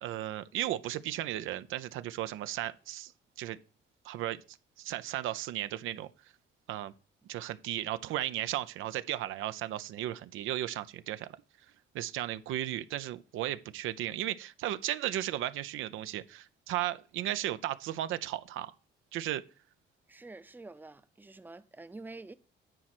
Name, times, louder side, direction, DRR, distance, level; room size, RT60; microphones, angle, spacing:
voice 1, 0.0-3.1 3.4-3.6 4.0-4.4 4.8-6.1 6.7-6.9 7.3-11.3 11.9-18.7 19.1-19.4, right 13 dB, 85° right, 0.5 m, -35 dB
voice 2, 20.1-22.3, right 2 dB, 10° right, 0.6 m, -47 dB
10.0 x 4.3 x 5.9 m
cardioid pair, 90°, 20 cm